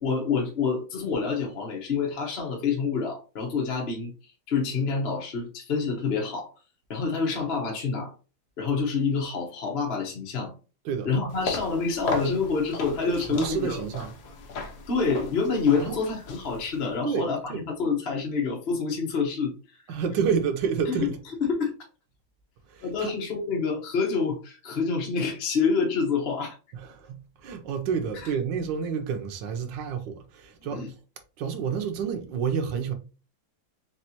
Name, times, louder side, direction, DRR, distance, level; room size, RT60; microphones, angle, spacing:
voice 1, 0.0-4.1 4.5-6.5 6.9-8.1 8.6-10.5 11.0-13.9 14.9-19.5 20.9-21.1 21.4-21.7 22.8-26.6 28.1-28.3 30.7-30.9, left 5 dB, 40° left, 0.9 m, -27 dB
sound 1, 11.3-16.9, left 3 dB, 60° left, 1.2 m, -36 dB
voice 2, 13.3-14.1 15.8-16.0 17.0-17.6 19.9-21.2 22.7-23.1 26.7-30.8 31.4-32.9, right 6 dB, 70° right, 1.4 m, -29 dB
4.1 x 3.3 x 2.9 m
omnidirectional pair, 2.2 m